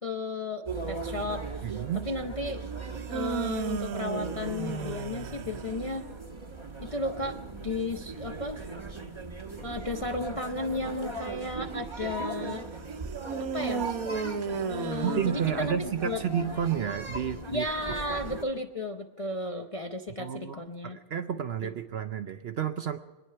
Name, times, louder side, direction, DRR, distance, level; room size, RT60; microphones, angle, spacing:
voice 1, 0.0-1.7 2.1-2.6 3.1-6.1 6.8-8.7 9.6-12.7 13.4-13.9 14.7-16.2 17.5-21.0, left 2 dB, 40° left, 3 dB, 0.5 m, -34 dB
sound 1, 0.7-18.4, right 3 dB, 20° right, 1.0 m, -38 dB
voice 2, 1.6-2.1 15.0-17.7 20.2-23.0, right 8 dB, 60° right, 9 dB, 0.7 m, -31 dB
sound 2, 2.9-6.1 13.2-16.2, right 6 dB, 75° right, 1.3 m, -34 dB
23.5 x 10.0 x 5.6 m, 1.2 s
omnidirectional pair, 1.5 m